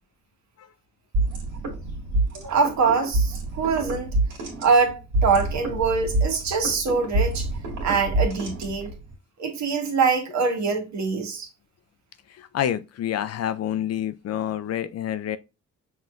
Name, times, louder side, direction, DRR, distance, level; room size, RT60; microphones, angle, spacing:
sound 1, 1.1-9.1, right 2 dB, 80° right, 1.9 m, -27 dB
voice 1, 2.3-4.1 4.6-7.5 7.8-8.9 9.4-11.5, right 5 dB, 65° right, 1.5 m, -23 dB
voice 2, 12.3-15.4, left 10 dB, 55° left, 0.5 m, -28 dB
5.7 x 3.1 x 2.4 m
cardioid pair, 90°, 30 cm